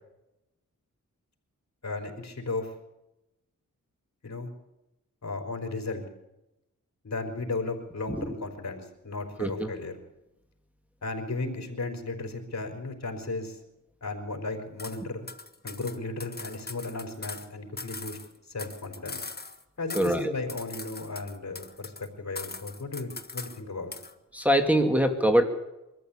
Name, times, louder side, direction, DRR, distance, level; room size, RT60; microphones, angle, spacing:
voice 1, 1.8-2.7 4.2-4.5 5.2-6.0 7.0-10.0 11.0-13.6 14.0-15.3 15.6-18.2 18.5-19.2 19.8-23.9, left 3 dB, 55° left, 5 dB, 4.3 m, -35 dB
sound 1, 14.8-15.0 15.3-17.5 17.8-19.6 19.9-20.2 20.5-22.1 22.4-23.6 23.9-24.1, left 3 dB, 30° left, 1.7 m, -41 dB
voice 2, 19.9-20.3 24.3-25.4, equal, 5° right, 3 dB, 2.3 m, -23 dB
24.0 x 14.0 x 8.5 m, 0.94 s
cardioid pair, 70°, 32 cm